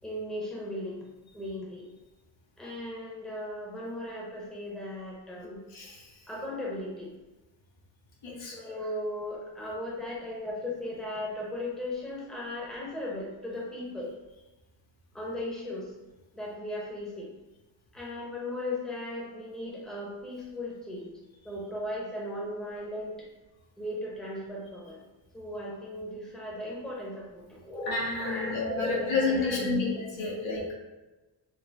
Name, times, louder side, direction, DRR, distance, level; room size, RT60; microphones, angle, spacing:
voice 1, 0.0-1.0 1.3-1.9 2.6-5.6 6.3-7.1 8.5-14.1 15.1-15.9 16.3-17.3 17.9-21.2 21.4-23.2 23.8-25.0 25.3-30.6, left 1 dB, ahead, -4 dB, 0.8 m, -36 dB
voice 2, 5.7-6.0 8.2-8.5 27.9-29.9 30.2-30.7, left 3 dB, 80° left, -3 dB, 1.1 m, -30 dB
4.4 x 2.1 x 3.4 m, 1.1 s
wide cardioid pair, 135°, 46 cm